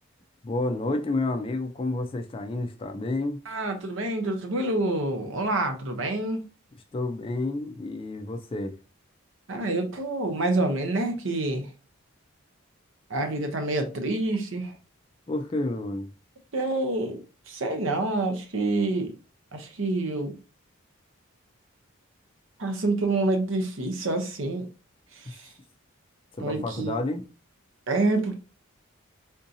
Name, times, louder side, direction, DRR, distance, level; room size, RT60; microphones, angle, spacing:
voice 1, 0.4-3.4 6.9-8.8 15.3-16.1 25.3-25.4 26.4-27.2, left 2 dB, 25° left, 0.3 m, -30 dB
voice 2, 3.5-6.4 9.5-11.7 13.1-14.7 16.5-17.2 17.5-19.1 19.5-20.3 22.6-24.7 25.2-25.5 26.4-27.0 27.9-28.3, right 2 dB, 65° right, 0.7 m, -27 dB
3.6 x 2.7 x 2.6 m
head